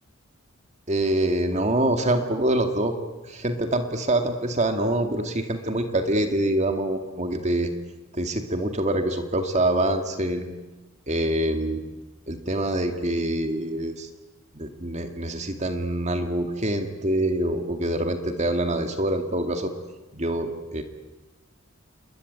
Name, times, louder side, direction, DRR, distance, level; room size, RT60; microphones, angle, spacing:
voice 1, 0.9-2.9 3.2-7.7 8.1-10.5 11.1-11.8 12.3-14.1 14.5-19.7 20.1-20.8, right 1 dB, 35° right, 6 dB, 2.2 m, -25 dB
28.0 x 22.0 x 9.5 m, 1.1 s
head